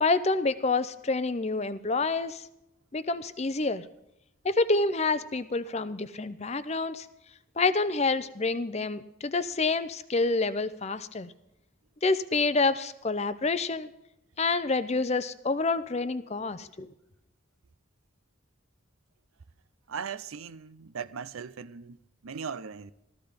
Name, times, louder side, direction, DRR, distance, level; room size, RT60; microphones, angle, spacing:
voice 1, 0.0-2.4 2.9-3.8 4.4-7.1 7.6-11.3 12.0-13.9 14.4-16.9, left 3 dB, 30° left, 0.6 m, -28 dB
voice 2, 19.9-22.9, right 6 dB, 85° right, 0.6 m, -39 dB
14.0 x 14.0 x 5.1 m
head